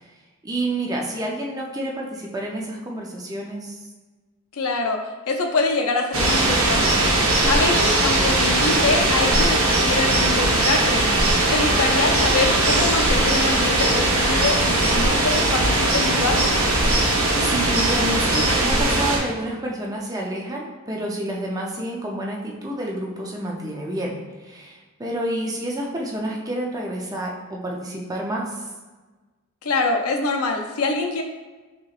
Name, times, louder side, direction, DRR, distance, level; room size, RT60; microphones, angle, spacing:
voice 1, 0.4-3.8 17.4-28.6, right 1 dB, 15° right, -1 dB, 0.5 m, -29 dB
voice 2, 4.5-5.0 5.3-7.0 7.5-11.0 11.5-16.4 29.6-31.2, left 3 dB, 80° left, 3 dB, 0.6 m, -24 dB
sound 1, 6.1-19.2, right 2 dB, 70° right, 0.9 m, -19 dB
6.0 x 2.9 x 2.4 m, 1.3 s
head